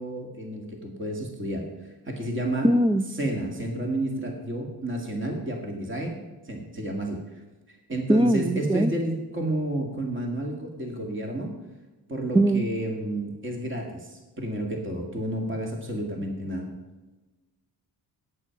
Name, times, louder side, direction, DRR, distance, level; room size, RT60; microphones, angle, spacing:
voice 1, 0.0-1.7 2.1-2.7 3.2-6.2 6.4-7.2 7.7-11.5 12.1-16.7, right 1 dB, 30° right, 1 dB, 2.2 m, -31 dB
voice 2, 2.6-3.0 8.1-8.9 12.3-12.6, right 1 dB, 15° right, 11 dB, 0.6 m, -20 dB
11.0 x 9.2 x 5.9 m, 1.1 s
cardioid pair, 115°, 40 cm